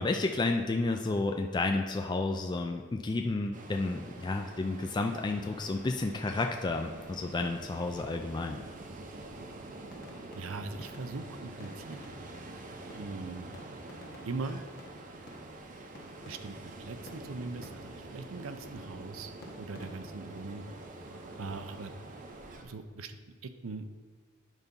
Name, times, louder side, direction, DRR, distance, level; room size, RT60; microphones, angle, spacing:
voice 1, 0.0-8.6, left 3 dB, 20° left, 4 dB, 0.3 m, -31 dB
Ocean, 3.5-22.6, right 2 dB, 40° right, 0.7 m, -46 dB
sound 1, 9.9-12.6 12.9-16.8 17.1-18.1 19.4-20.4, left 1 dB, 50° left, 1.2 m, -52 dB
voice 2, 10.3-12.0 13.0-13.5 14.2-14.6 16.3-16.6 16.8-19.3 19.6-20.6 21.4-21.9 22.6-23.1 23.6-23.8, right 3 dB, 80° right, 10 dB, 0.6 m, -40 dB
9.1 x 4.0 x 5.3 m, 1.5 s
head